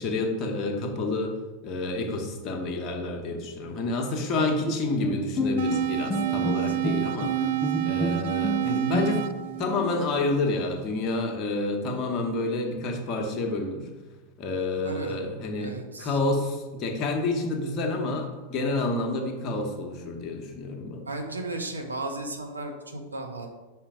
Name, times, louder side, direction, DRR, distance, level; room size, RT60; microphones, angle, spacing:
voice 1, 0.0-1.3 1.6-7.5 7.8-9.2 9.6-13.9 14.4-21.1, left 2 dB, 35° left, 2 dB, 1.1 m, -29 dB
Bowed string instrument, 4.6-9.5, left 2 dB, 10° left, 0.5 m, -30 dB
sound 1, 5.6-10.6, right 15 dB, 55° right, 0.3 m, -28 dB
voice 2, 6.4-6.8 14.8-15.2 15.6-16.2 21.1-23.5, right 2 dB, 80° right, 3 dB, 0.9 m, -35 dB
5.6 x 4.3 x 5.0 m, 1.2 s
figure-of-eight pair, 90°, 0 cm